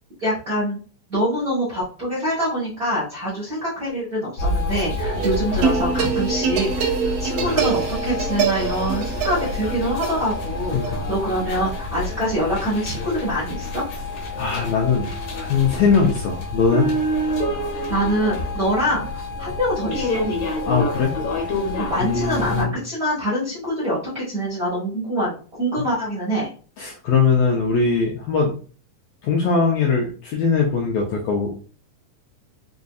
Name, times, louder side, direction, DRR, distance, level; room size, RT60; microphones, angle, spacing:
voice 1, 0.2-0.8 1.1-13.8 17.9-20.2 21.8-26.5, equal, 55° right, -9 dB, 1.0 m, -25 dB
sound 1, 4.4-22.6, left 2 dB, 65° left, 1.6 m, -28 dB
sound 2, 5.0-12.4, right 6 dB, 85° right, 1.4 m, -25 dB
voice 2, 10.7-11.1 14.4-15.1 15.3-16.9 20.6-21.1 22.0-22.7 26.8-28.5 29.2-31.5, left 5 dB, 80° left, -1 dB, 1.6 m, -20 dB
5.0 x 2.6 x 2.3 m, 0.39 s
omnidirectional pair, 3.7 m